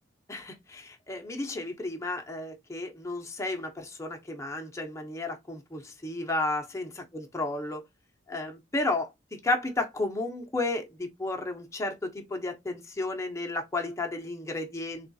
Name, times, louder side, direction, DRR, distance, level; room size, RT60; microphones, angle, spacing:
voice 1, 0.3-6.9 7.1-7.8 8.3-9.1 9.4-15.1, left 2 dB, 15° left, 0.7 m, -32 dB
3.6 x 2.3 x 2.6 m
head